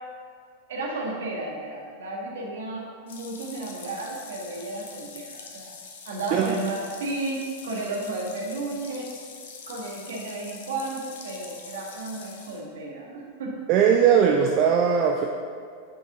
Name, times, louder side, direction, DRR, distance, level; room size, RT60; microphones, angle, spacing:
voice 1, 0.7-5.8 6.0-7.4 7.6-9.1 9.7-13.5, right 2 dB, 60° right, -2 dB, 1.6 m, -33 dB
sound 1, 3.1-12.6, left 5 dB, 60° left, 0.9 m, -44 dB
voice 2, 13.7-15.3, right 7 dB, 40° right, 1 dB, 0.5 m, -19 dB
8.7 x 5.3 x 3.9 m, 2.1 s
figure-of-eight pair, 90°, 0 cm